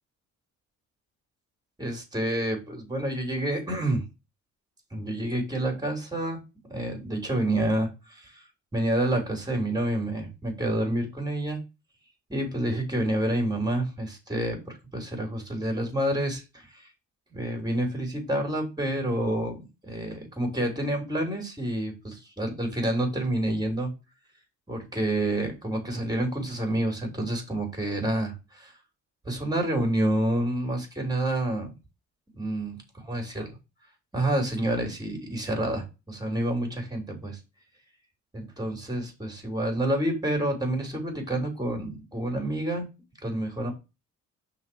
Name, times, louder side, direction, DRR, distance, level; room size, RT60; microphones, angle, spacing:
voice 1, 1.8-4.1 4.9-6.4 6.7-8.4 8.7-11.6 12.3-16.9 17.3-19.6 19.8-23.9 24.7-28.7 29.2-31.7 32.3-33.5 34.1-37.4 38.3-42.9 43.2-43.7, right 1 dB, 15° right, 3.4 m, -28 dB
5.7 x 4.1 x 6.0 m
cardioid pair, 90°, 30 cm